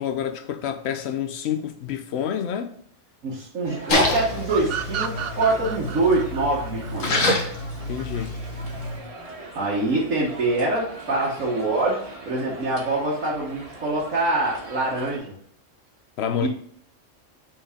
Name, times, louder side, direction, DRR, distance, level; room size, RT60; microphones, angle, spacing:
voice 1, 0.0-2.7 7.9-8.4 16.2-16.5, left 9 dB, 60° left, 0.9 m, -28 dB
voice 2, 3.2-7.1 9.5-12.0 12.3-15.4 16.4-16.5, right 2 dB, 90° right, 1.8 m, -24 dB
sound 1, 3.6-15.2, right 2 dB, 30° right, 1.2 m, -41 dB
Splash splatter, 3.9-9.0, left 2 dB, 80° left, 1.7 m, -27 dB
sound 2, 4.5-7.9, right 9 dB, 65° right, 0.6 m, -32 dB
6.1 x 4.1 x 4.9 m
omnidirectional pair, 1.3 m